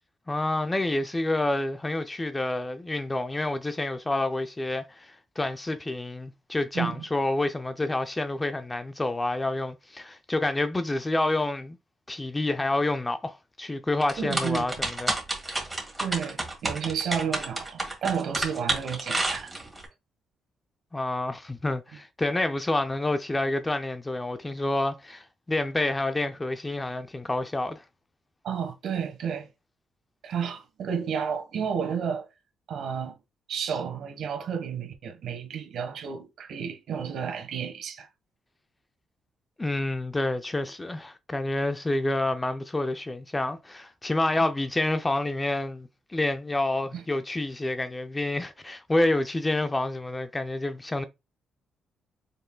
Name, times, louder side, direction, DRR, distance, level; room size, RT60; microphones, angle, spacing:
voice 1, 0.3-11.8 12.1-15.1 20.9-27.8 39.6-51.0, left 2 dB, 15° left, 0.5 m, -28 dB
sound 1, 14.0-19.8, right 2 dB, 10° right, 1.9 m, -29 dB
voice 2, 14.2-14.7 16.0-19.6 28.4-29.5 30.2-32.3 32.7-33.2 33.5-38.1 46.9-47.0, right 7 dB, 70° right, 1.3 m, -31 dB
5.4 x 3.6 x 2.2 m
cardioid pair, 90°, 0 cm